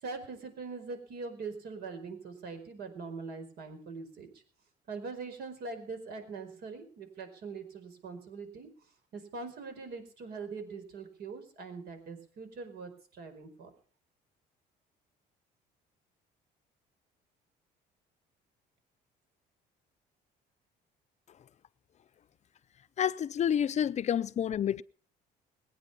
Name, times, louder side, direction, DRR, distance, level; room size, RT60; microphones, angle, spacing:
voice 1, 0.0-4.3 4.9-8.7 9.1-13.7, right 4 dB, 70° right, 4.8 m, -42 dB
voice 2, 23.0-24.8, left 9 dB, 45° left, 0.6 m, -29 dB
21.5 x 9.2 x 5.6 m
cardioid pair, 110°, 17 cm